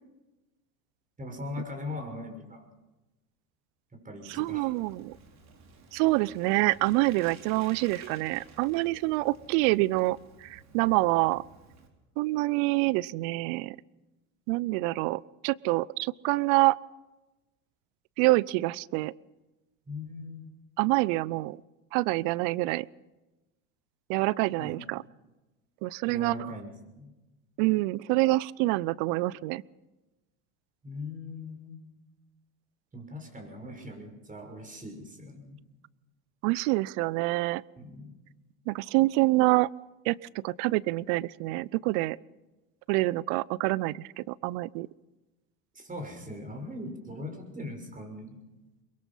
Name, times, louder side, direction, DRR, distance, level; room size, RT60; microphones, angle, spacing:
voice 1, 1.2-2.7 3.9-4.7 19.9-20.5 24.6-24.8 26.1-27.1 30.8-31.8 32.9-35.6 37.8-38.1 45.7-48.4, left 1 dB, 20° right, 4 dB, 6.1 m, -40 dB
Bicycle, 4.3-11.9, right 4 dB, 40° right, 4.1 m, -53 dB
voice 2, 4.3-5.2 5.9-11.4 12.2-13.8 14.5-16.8 18.2-19.1 20.8-21.6 21.9-22.9 24.1-25.0 25.8-26.3 27.6-29.6 36.4-37.6 38.7-39.7 40.0-42.2 42.9-44.9, right 21 dB, 65° right, 23 dB, 0.6 m, -26 dB
23.5 x 22.5 x 5.6 m, 1.1 s
hypercardioid pair, 90°, 40 cm